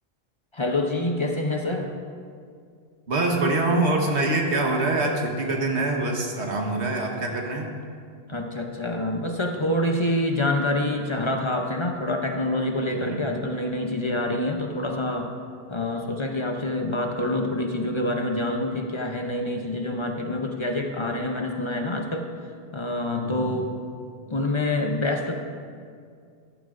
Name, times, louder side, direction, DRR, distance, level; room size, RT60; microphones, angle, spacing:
voice 1, 0.5-1.9 8.3-15.3 15.7-22.3 22.7-23.7 24.3-25.3, left 1 dB, 30° left, 3 dB, 0.6 m, -26 dB
voice 2, 3.1-7.7 13.0-13.2 23.2-23.5, right 2 dB, 85° right, 1 dB, 1.6 m, -25 dB
14.0 x 11.0 x 2.5 m, 2.2 s
omnidirectional pair, 1.1 m